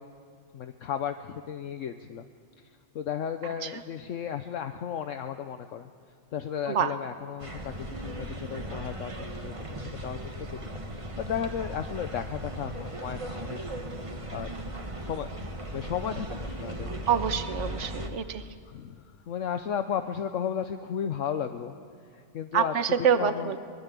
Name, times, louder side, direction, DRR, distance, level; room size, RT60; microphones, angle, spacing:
voice 1, 0.5-2.2 2.9-5.9 6.3-7.7 8.0-10.5 10.9-13.6 14.3-14.5 15.0-15.3 15.7-17.2 18.7-21.8 22.1-22.7 23.0-23.5, left 8 dB, 70° left, 8 dB, 1.1 m, -34 dB
sound 1, 7.4-18.1, right 1 dB, 25° right, 1.5 m, -37 dB
voice 2, 17.1-18.4 22.5-23.6, right 7 dB, 60° right, 10 dB, 1.3 m, -26 dB
23.5 x 21.0 x 8.3 m, 2.1 s
omnidirectional pair, 1.4 m